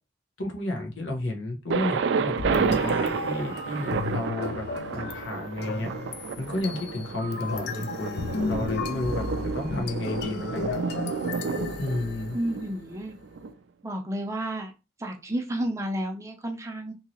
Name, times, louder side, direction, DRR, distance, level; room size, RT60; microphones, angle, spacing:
voice 1, 0.4-4.6 4.9-5.9 6.4-9.2 9.5-10.8 11.8-12.4, left 2 dB, 80° left, 0.8 m, -32 dB
Thunder, 1.7-13.5, right 5 dB, 65° right, 0.3 m, -31 dB
sound 1, 2.4-12.7, left 4 dB, 55° left, 0.4 m, -34 dB
voice 2, 12.3-13.2 13.8-14.7 15.0-16.9, right 1 dB, 15° right, 0.6 m, -31 dB
2.9 x 2.8 x 2.7 m
head